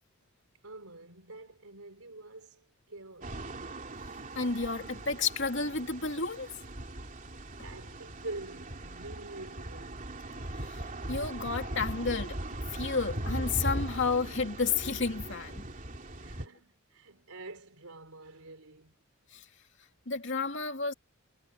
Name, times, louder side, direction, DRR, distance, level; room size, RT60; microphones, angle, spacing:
voice 1, 0.6-3.5 7.6-10.1 16.2-18.9, right 2 dB, 90° right, 4.6 m, -46 dB
sound 1, 3.2-16.5, right 1 dB, 40° right, 3.1 m, -39 dB
voice 2, 4.3-6.5 10.3-10.8 11.1-12.4 12.7-15.7 19.3-19.4 20.1-20.9, left 4 dB, 60° left, 2.8 m, -31 dB
head